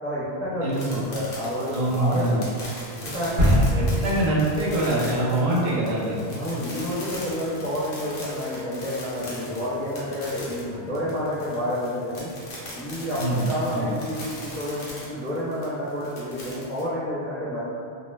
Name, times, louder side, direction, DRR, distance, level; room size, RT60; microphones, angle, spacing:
voice 1, 0.0-2.4 3.0-3.4 6.3-12.3 12.7-17.6, equal, 15° left, -12 dB, 0.5 m, -29 dB
voice 2, 0.6-1.0 1.7-2.5 3.4-6.2 13.2-13.9, right 1 dB, 80° right, -5 dB, 0.9 m, -25 dB
sound 1, 0.7-16.8, left 1 dB, 65° left, 0.9 m, -40 dB
sound 2, 2.9-11.7, left 3 dB, 35° left, 0.9 m, -39 dB
sound 3, 3.4-5.3 5.7-5.8, equal, 45° right, 0.8 m, -23 dB
2.4 x 2.1 x 3.1 m, 2.4 s
omnidirectional pair, 1.1 m